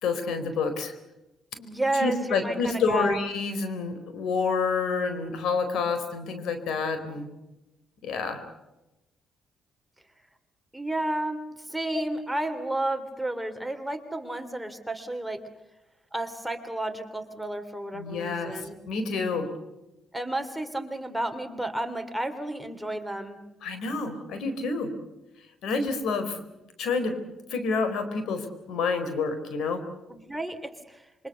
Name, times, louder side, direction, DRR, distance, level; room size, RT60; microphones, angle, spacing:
voice 1, 0.0-0.9 2.0-7.3 8.0-8.4 11.9-12.0 17.9-19.5 23.6-24.9 25.6-26.4 26.8-27.1 27.5-29.8, left 4 dB, 80° left, 9 dB, 4.3 m, -28 dB
voice 2, 1.6-3.2 10.7-11.4 11.7-15.4 16.1-18.8 20.1-23.4 30.1-31.1, right 1 dB, 5° right, 6 dB, 2.9 m, -31 dB
27.0 x 24.0 x 6.9 m, 0.97 s
cardioid pair, 90°, 0 cm